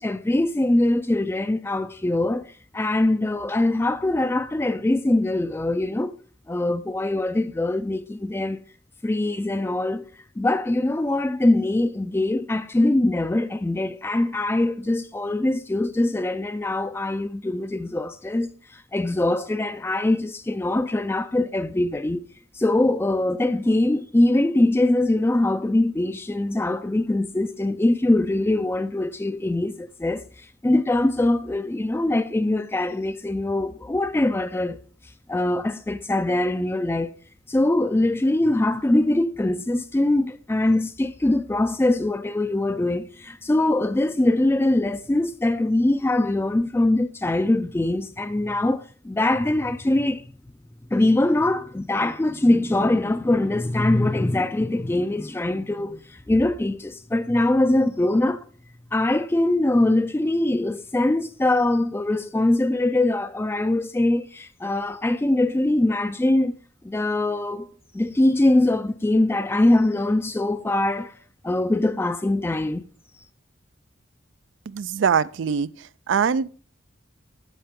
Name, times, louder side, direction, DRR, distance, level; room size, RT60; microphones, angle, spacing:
voice 1, 0.0-2.5 2.7-6.2 6.5-8.6 9.0-10.1 10.4-22.2 22.5-30.2 30.6-34.8 35.3-37.1 37.5-50.2 50.9-58.4 58.9-66.5 66.8-67.7 67.9-71.2 71.4-72.8, left 1 dB, 10° left, 0.3 m, -22 dB
voice 2, 74.7-75.7 76.1-76.5, right 6 dB, 70° right, 0.4 m, -22 dB
14.5 x 5.5 x 3.6 m
head